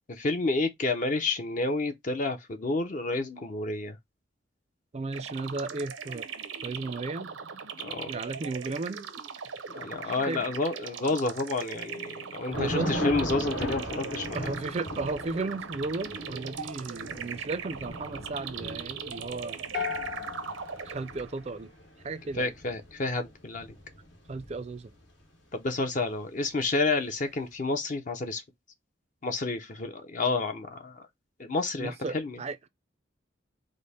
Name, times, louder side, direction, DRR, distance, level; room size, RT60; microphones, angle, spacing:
voice 1, 0.1-4.0 7.8-8.1 9.7-14.5 22.3-23.7 25.5-28.4 29.2-31.0 31.4-32.4, left 3 dB, 40° left, 0.5 m, -30 dB
voice 2, 4.9-6.3 6.6-7.3 8.1-9.1 10.0-10.4 12.5-13.0 14.3-19.6 20.8-21.7 22.0-22.6 24.3-24.9 31.8-32.6, right 3 dB, 35° right, 0.4 m, -34 dB
sound 1, 5.1-21.5, right 6 dB, 80° right, 0.7 m, -40 dB
Thunder / Rain, 12.5-25.0, left 1 dB, 80° left, 1.6 m, -38 dB
sound 2, 19.7-22.0, left 6 dB, 60° left, 0.9 m, -37 dB
5.1 x 2.1 x 4.0 m
head